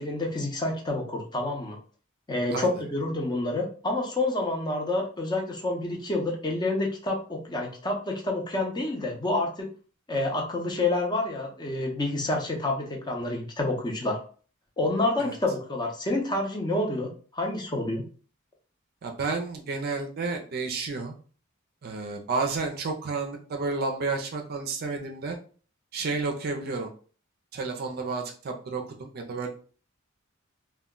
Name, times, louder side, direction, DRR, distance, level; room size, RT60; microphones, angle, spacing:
voice 1, 0.0-1.8 2.3-9.7 10.1-14.2 14.8-18.0, left 2 dB, 20° left, 1 dB, 0.6 m, -28 dB
voice 2, 19.0-21.1 21.8-25.4 25.9-26.9 27.5-29.5, right 4 dB, 50° right, 3 dB, 0.4 m, -31 dB
2.2 x 2.1 x 3.6 m, 0.41 s
head